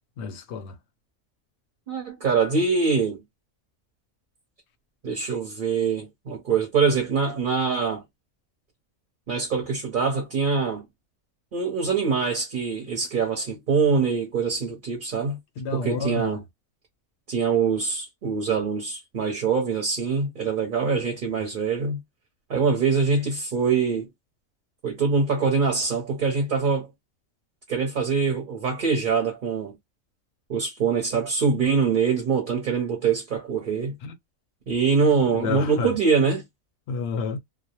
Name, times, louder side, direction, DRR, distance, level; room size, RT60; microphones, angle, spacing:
voice 1, 0.2-0.8 15.6-16.4 34.0-34.1 35.3-36.0 36.9-37.4, left 5 dB, 65° left, 0.7 m, -30 dB
voice 2, 1.9-3.2 5.0-8.0 9.3-10.8 11.5-15.4 15.7-16.4 17.3-22.0 22.5-24.1 24.8-26.9 27.7-29.8 30.5-34.0 34.7-36.4, right 5 dB, 45° right, 0.7 m, -24 dB
2.3 x 2.0 x 2.8 m
omnidirectional pair, 1.4 m